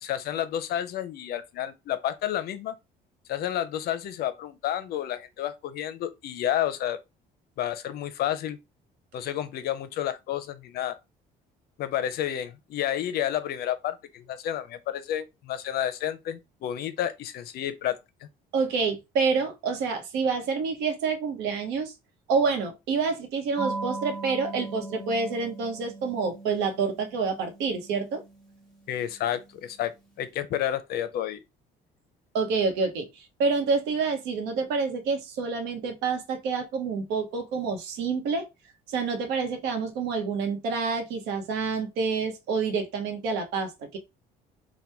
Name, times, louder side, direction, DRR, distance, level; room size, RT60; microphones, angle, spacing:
voice 1, 0.0-2.7 3.3-7.0 7.6-8.6 9.1-11.0 11.8-18.0 28.9-29.9 30.2-31.4, left 11 dB, 70° left, 0.5 m, -30 dB
voice 2, 18.5-21.9 22.3-28.2 32.3-38.5 38.9-44.0, right 4 dB, 90° right, 0.9 m, -28 dB
sound 1, 23.6-29.8, right 2 dB, 5° left, 1.0 m, -39 dB
2.9 x 2.2 x 3.4 m
cardioid pair, 110°, 17 cm